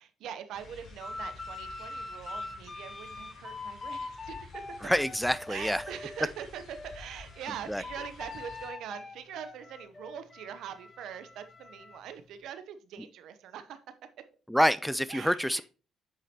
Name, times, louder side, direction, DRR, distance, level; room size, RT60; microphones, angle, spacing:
voice 1, 0.0-4.8 5.5-13.8 15.1-15.4, right 9 dB, 80° right, 0.7 m, -43 dB
sound 1, 0.5-8.7, left 4 dB, 65° left, 3.7 m, -52 dB
sound 2, 1.0-6.3 6.7-12.0, left 3 dB, 30° left, 0.8 m, -43 dB
voice 2, 4.8-5.8 7.7-7.8 14.5-15.6, equal, ahead, 0.3 m, -27 dB
8.0 x 5.0 x 2.9 m
cardioid pair, 75°, 0 cm